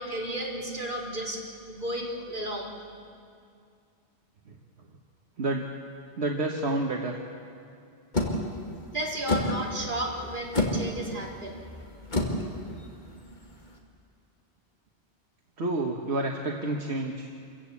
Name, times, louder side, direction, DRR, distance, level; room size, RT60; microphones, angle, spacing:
voice 1, 0.0-2.7 8.9-11.6, right 1 dB, 50° right, -2 dB, 3.3 m, -33 dB
voice 2, 6.2-7.2 15.6-17.3, right 2 dB, 75° right, 1 dB, 1.6 m, -29 dB
sound 1, 8.1-13.7, left 1 dB, 45° left, 2.4 m, -31 dB
27.0 x 15.5 x 8.4 m, 2.4 s
omnidirectional pair, 1.1 m